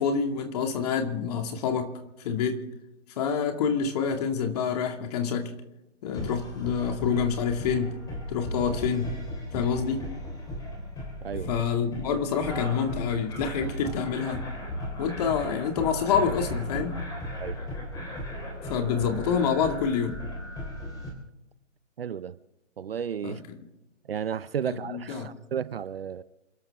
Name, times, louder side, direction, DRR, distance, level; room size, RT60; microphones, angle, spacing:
voice 1, 0.0-1.9 2.2-2.6 3.2-5.5 6.0-8.0 8.3-9.2 9.5-10.1 11.5-14.5 15.0-17.0 18.6-20.2 23.2-23.6 24.6-25.3, left 6 dB, 30° left, 2.4 m, -27 dB
sound 1, 6.1-21.1, left 1 dB, 10° left, 3.7 m, -36 dB
voice 2, 22.0-22.4 22.8-23.4 24.1-26.2, right 8 dB, 50° right, 0.7 m, -33 dB
28.5 x 12.5 x 3.7 m
figure-of-eight pair, 140°, 37 cm